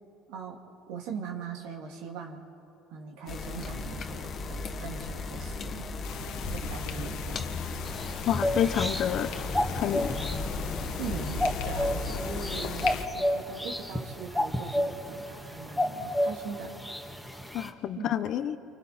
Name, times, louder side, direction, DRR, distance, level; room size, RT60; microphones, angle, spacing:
voice 1, 0.3-0.6 0.9-2.4 2.9-5.9 6.4-7.5 11.0-16.7 18.0-18.2, right 6 dB, 80° right, 1 dB, 2.4 m, -41 dB
sound 1, 3.3-13.0, left 3 dB, 40° left, 1.4 m, -35 dB
sound 2, 6.0-13.0, left 10 dB, 75° left, 1.4 m, -42 dB
sound 3, 7.8-17.7, left 1 dB, ahead, 1.7 m, -32 dB
voice 2, 8.3-9.3 9.7-10.1 17.5-18.6, left 10 dB, 55° left, 11 dB, 0.8 m, -28 dB
29.5 x 24.5 x 4.4 m, 3.0 s
cardioid pair, 115°, 0 cm